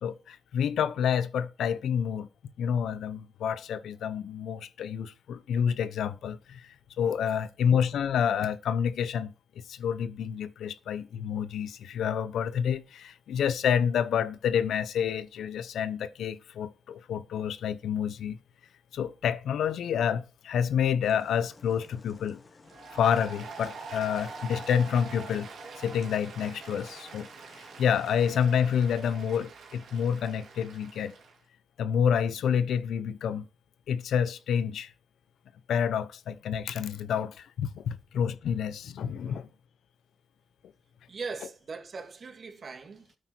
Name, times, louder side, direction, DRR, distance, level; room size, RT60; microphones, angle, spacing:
voice 1, 0.0-2.3 2.6-9.3 9.7-18.4 18.9-22.4 22.9-25.5 25.8-27.3 27.6-31.1 31.8-33.5 33.9-34.9 35.7-39.5, left 8 dB, 85° left, 0.7 m, -28 dB
sound 1, 21.0-28.3, left 3 dB, 50° left, 3.0 m, -56 dB
Applause, 22.6-31.4, right 4 dB, 85° right, 3.4 m, -45 dB
voice 2, 41.1-43.2, right 4 dB, 60° right, 2.7 m, -40 dB
12.5 x 8.6 x 4.5 m
supercardioid pair, 50°, 0 cm